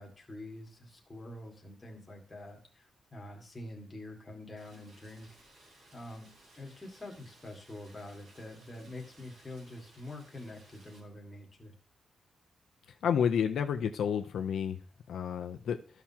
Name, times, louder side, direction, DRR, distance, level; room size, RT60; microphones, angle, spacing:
voice 1, 0.0-5.3 5.9-11.7, left 1 dB, 15° left, 0 dB, 1.9 m, -46 dB
Rain, 4.6-11.0, right 1 dB, 85° right, 3.8 m, -60 dB
voice 2, 13.0-14.8 15.1-15.8, left 8 dB, 75° left, 6 dB, 0.6 m, -30 dB
14.0 x 5.9 x 2.9 m, 0.43 s
wide cardioid pair, 170°, 0 cm